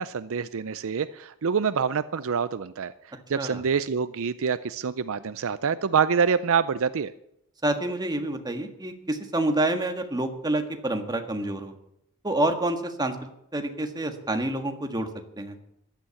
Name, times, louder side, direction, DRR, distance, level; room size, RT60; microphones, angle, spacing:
voice 1, 0.0-2.9 3.3-7.1, right 6 dB, 65° right, 15 dB, 0.5 m, -26 dB
voice 2, 7.6-11.7 12.2-13.2 13.5-15.1 15.4-15.5, right 1 dB, 20° right, 5 dB, 1.6 m, -28 dB
15.5 x 11.5 x 7.1 m, 0.76 s
head